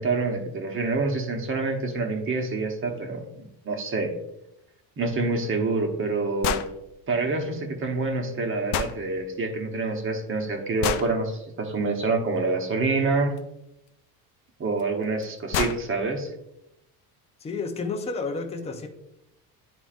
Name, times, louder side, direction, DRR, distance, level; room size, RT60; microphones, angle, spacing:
voice 1, 0.0-3.3 3.6-4.1 5.0-6.6 7.1-13.4 14.6-16.3, right 3 dB, 30° right, 4 dB, 1.1 m, -27 dB
sound 1, 6.4-6.7 8.7-9.0 10.8-11.1 13.4-13.5 14.8-14.9 15.2-15.3 15.5-15.8, left 8 dB, 85° left, 0.6 m, -27 dB
voice 2, 17.4-18.9, left 4 dB, 15° left, 4 dB, 0.5 m, -31 dB
10.5 x 3.9 x 2.5 m, 0.84 s
cardioid pair, 135°, 41 cm